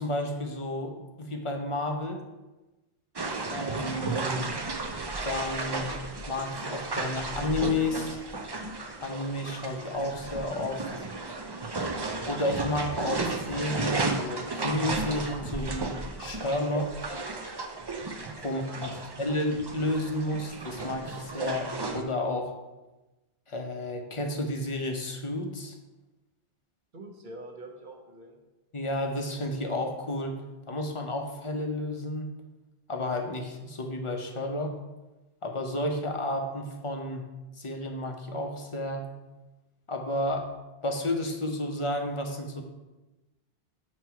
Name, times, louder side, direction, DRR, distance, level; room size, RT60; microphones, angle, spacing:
voice 1, 0.0-2.2 3.5-4.5 5.2-5.9 6.3-8.2 9.0-11.1 12.3-15.9 16.2-16.9 18.4-18.9 19.2-22.5 23.5-25.8 28.7-30.4 30.7-32.3 32.9-34.7 35.4-37.2 37.6-39.1 39.9-40.5 40.8-42.6, left 1 dB, 35° left, 4 dB, 0.7 m, -31 dB
sound 1, 3.2-22.0, right 3 dB, 30° right, 0.5 m, -34 dB
voice 2, 18.4-19.1 26.9-28.4, right 2 dB, 50° right, 0 dB, 1.2 m, -45 dB
7.7 x 3.0 x 5.7 m, 1.1 s
omnidirectional pair, 1.1 m